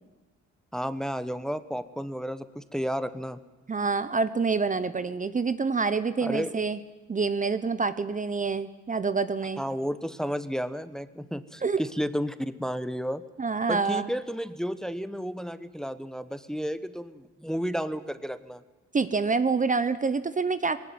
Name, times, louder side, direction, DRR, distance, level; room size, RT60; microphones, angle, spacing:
voice 1, 0.7-3.4 6.2-6.5 9.6-13.2 13.7-18.6, equal, ahead, 13 dB, 1.1 m, -32 dB
voice 2, 3.7-6.8 7.1-9.6 11.6-11.8 13.4-14.1 18.9-20.8, right 4 dB, 25° right, 13 dB, 0.9 m, -27 dB
19.0 x 18.5 x 9.5 m, 1.1 s
cardioid pair, 90°, 30 cm